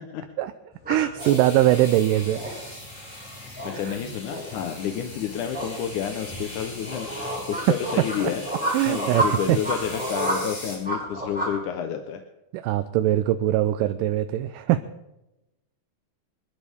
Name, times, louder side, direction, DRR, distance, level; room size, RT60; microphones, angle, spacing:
sound 1, 0.7-11.5, right 1 dB, ahead, 6.7 m, -31 dB
voice 1, 0.9-2.7 3.9-4.0 7.7-7.8 8.2-8.3 8.7-9.6 12.5-14.8, right 14 dB, 80° right, 10 dB, 2.1 m, -22 dB
sound 2, 1.2-10.8, left 1 dB, 40° left, 7.7 m, -40 dB
voice 2, 3.3-8.4 8.9-12.2, left 9 dB, 70° left, 5 dB, 2.3 m, -30 dB
25.5 x 13.0 x 3.6 m, 0.95 s
omnidirectional pair, 4.1 m